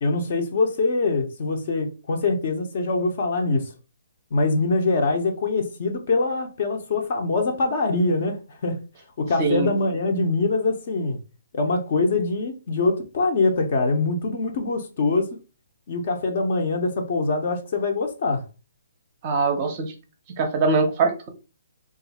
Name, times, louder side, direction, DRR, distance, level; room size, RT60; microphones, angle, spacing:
voice 1, 0.0-3.7 4.3-8.8 9.2-11.2 11.5-15.4 15.9-18.4, left 3 dB, 40° left, 0.7 m, -23 dB
voice 2, 9.4-9.8 19.2-19.9 20.4-21.3, right 4 dB, 25° right, 0.6 m, -22 dB
2.6 x 2.4 x 4.1 m
hypercardioid pair, 170°, 0 cm